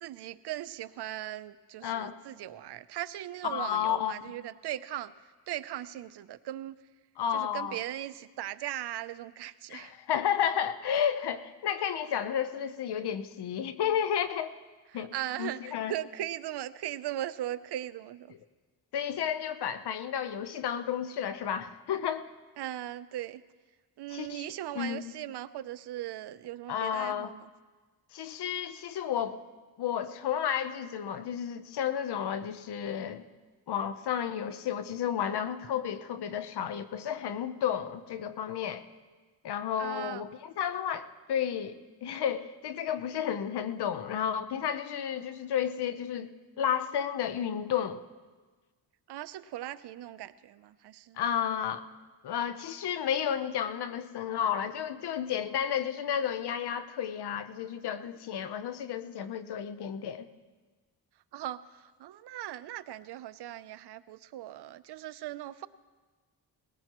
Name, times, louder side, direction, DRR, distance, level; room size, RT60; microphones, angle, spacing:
voice 1, 0.0-5.1 5.5-6.8 7.3-9.9 14.9-18.3 22.6-23.4 24.0-27.5 39.8-40.2 49.1-51.2 61.3-65.7, right 13 dB, 75° right, 15 dB, 0.6 m, -39 dB
voice 2, 1.8-2.2 3.4-4.2 7.2-7.8 9.7-14.5 14.9-15.1 15.4-15.9 18.9-22.3 24.1-24.5 24.7-25.0 26.7-27.3 28.1-29.4 29.8-33.2 33.7-38.8 39.4-46.3 46.6-48.0 51.2-51.8 52.2-60.3, left 9 dB, 70° left, 11 dB, 0.9 m, -32 dB
19.5 x 17.0 x 3.0 m, 1.4 s
cardioid pair, 75°, 41 cm